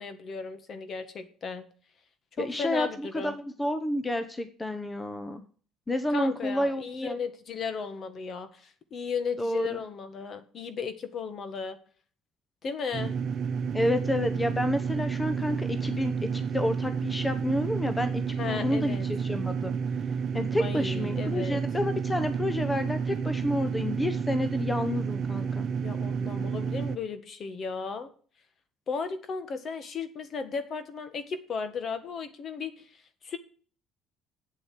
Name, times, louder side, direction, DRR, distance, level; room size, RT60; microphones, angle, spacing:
voice 1, 0.0-1.6 2.4-3.3 6.1-11.8 12.6-13.2 18.4-19.1 20.6-21.6 25.8-28.1 28.9-33.4, left 5 dB, 45° left, 11 dB, 1.6 m, -35 dB
voice 2, 2.4-5.4 5.9-7.2 9.4-9.8 13.7-19.8 20.3-25.7, left 1 dB, 15° left, 9 dB, 1.0 m, -30 dB
sound 1, 12.9-27.0, right 6 dB, 45° right, 1.0 m, -30 dB
8.2 x 8.1 x 7.5 m, 0.43 s
cardioid pair, 110°, 0 cm